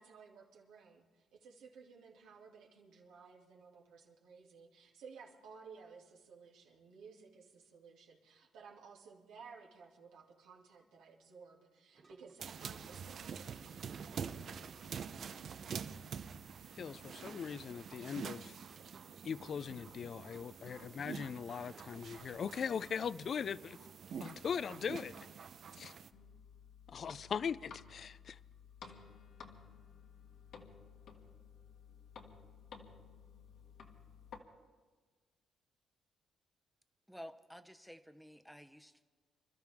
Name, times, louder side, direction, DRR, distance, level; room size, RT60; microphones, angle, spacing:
voice 1, 0.0-15.0, right 5 dB, 90° right, -1 dB, 2.6 m, -57 dB
sound 1, 11.9-22.9, right 4 dB, 45° right, 1.4 m, -64 dB
sound 2, 12.4-26.1, right 7 dB, 60° right, 0.7 m, -47 dB
voice 2, 16.8-18.5 19.2-23.8 24.2-25.1 25.8-25.9 26.9-28.4, left 7 dB, 55° left, 17 dB, 0.4 m, -40 dB
sound 3, 26.1-34.4, left 6 dB, 70° left, 1.5 m, -55 dB
voice 3, 37.1-39.0, equal, ahead, 10 dB, 0.9 m, -52 dB
26.5 x 13.0 x 3.6 m, 1.4 s
cardioid pair, 90°, 0 cm